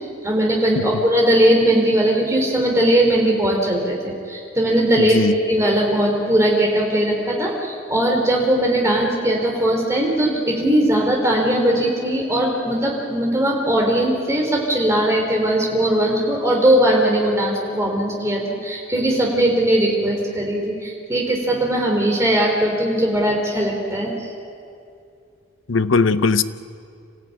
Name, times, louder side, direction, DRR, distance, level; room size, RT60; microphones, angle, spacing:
voice 1, 0.2-24.3, right 1 dB, 15° right, -1 dB, 3.6 m, -19 dB
voice 2, 5.0-5.4 25.7-26.4, left 4 dB, 80° left, 13 dB, 0.7 m, -19 dB
26.5 x 15.0 x 9.4 m, 2.5 s
head